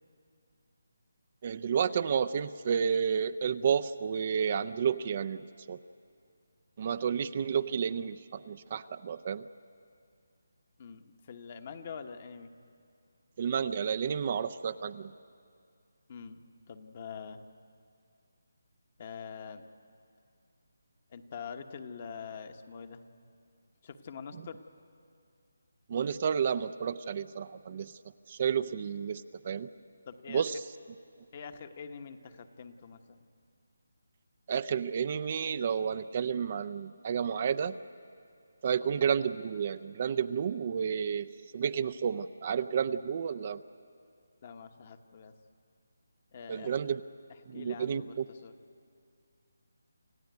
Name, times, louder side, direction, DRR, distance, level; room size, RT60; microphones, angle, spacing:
voice 1, 1.4-5.8 6.8-9.5 13.4-15.1 25.9-27.9 28.3-29.7 30.3-30.5 34.5-37.7 38.6-43.6 46.5-47.0 47.5-48.2, right 7 dB, 35° right, 12 dB, 0.5 m, -31 dB
voice 2, 10.8-12.5 16.1-16.4 16.7-17.4 19.0-19.6 21.1-23.0 23.8-24.6 30.1-30.4 31.3-33.2 44.4-45.3 46.3-46.7 47.5-48.5, left 6 dB, 35° left, 8 dB, 1.2 m, -44 dB
28.0 x 15.5 x 9.4 m, 2.3 s
figure-of-eight pair, 165°, 0 cm